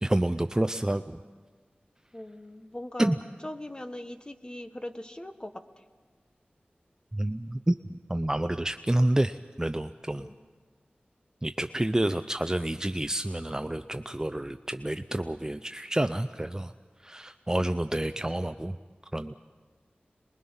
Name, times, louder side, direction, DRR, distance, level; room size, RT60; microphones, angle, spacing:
voice 1, 0.0-1.2 3.0-3.2 7.1-7.8 8.1-10.3 11.4-16.7 17.0-18.8 19.1-19.3, right 1 dB, 20° right, 9 dB, 0.6 m, -28 dB
voice 2, 2.1-3.1 3.4-5.8 10.2-10.4, left 1 dB, 25° left, 8 dB, 1.3 m, -40 dB
27.0 x 21.5 x 5.6 m, 1.5 s
wide cardioid pair, 60°, 3 cm